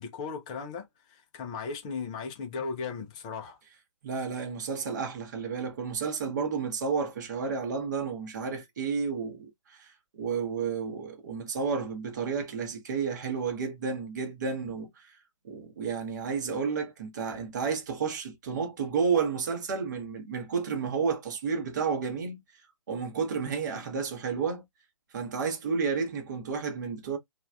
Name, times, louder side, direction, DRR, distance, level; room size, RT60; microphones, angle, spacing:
voice 1, 0.0-3.6, left 5 dB, 10° left, 0.4 m, -37 dB
voice 2, 4.0-15.1 15.4-22.4 22.9-24.6 25.1-27.2, right 5 dB, 35° right, 0.8 m, -31 dB
3.1 x 2.3 x 2.2 m
figure-of-eight pair, 135°, 17 cm